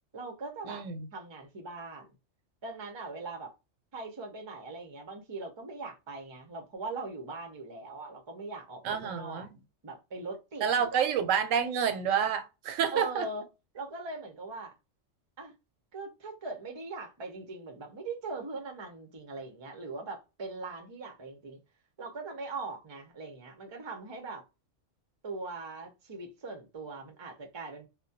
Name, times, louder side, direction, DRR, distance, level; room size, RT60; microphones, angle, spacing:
voice 1, 0.1-0.8 1.1-2.1 2.6-3.5 3.9-9.5 9.8-10.6 10.9-11.1 12.9-13.4 13.7-14.7 15.4-15.5 15.9-21.6 22.0-24.4 25.2-27.9, right 3 dB, 35° right, 0.4 m, -40 dB
voice 2, 0.7-1.1 8.8-9.6 10.6-13.2, right 7 dB, 90° right, 0.9 m, -29 dB
2.2 x 2.1 x 2.6 m
omnidirectional pair, 1.3 m